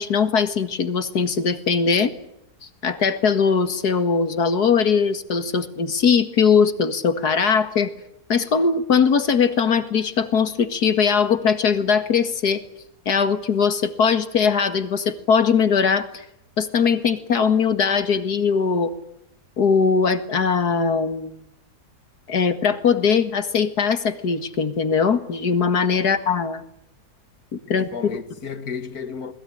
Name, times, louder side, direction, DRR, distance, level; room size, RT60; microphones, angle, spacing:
voice 1, 0.0-2.1 2.8-7.9 8.3-12.6 13.1-16.3 16.6-18.9 19.6-21.4 22.3-26.6 27.7-27.9, left 6 dB, 85° left, 2.4 m, -20 dB
voice 2, 27.6-29.3, left 6 dB, 70° left, 2.3 m, -33 dB
29.0 x 20.5 x 10.0 m
omnidirectional pair, 1.6 m